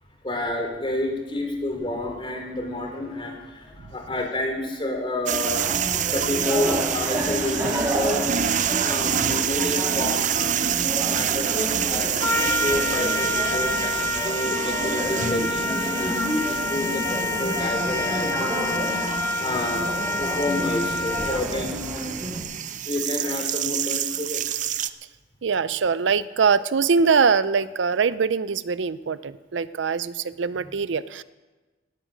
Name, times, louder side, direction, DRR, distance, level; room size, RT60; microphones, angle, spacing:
voice 1, 0.2-5.7 6.1-8.3 8.8-10.7 11.1-22.0 22.8-24.4, left 1 dB, 30° left, 3 dB, 3.0 m, -30 dB
sound 1, 5.3-24.9, right 9 dB, 45° right, 0.6 m, -28 dB
sound 2, 5.4-22.4, equal, 15° right, 3.3 m, -31 dB
Trumpet, 12.2-21.6, left 2 dB, 15° left, 1.0 m, -28 dB
voice 2, 25.4-31.2, right 5 dB, 85° right, 16 dB, 0.5 m, -23 dB
18.5 x 10.5 x 6.2 m, 1.2 s
head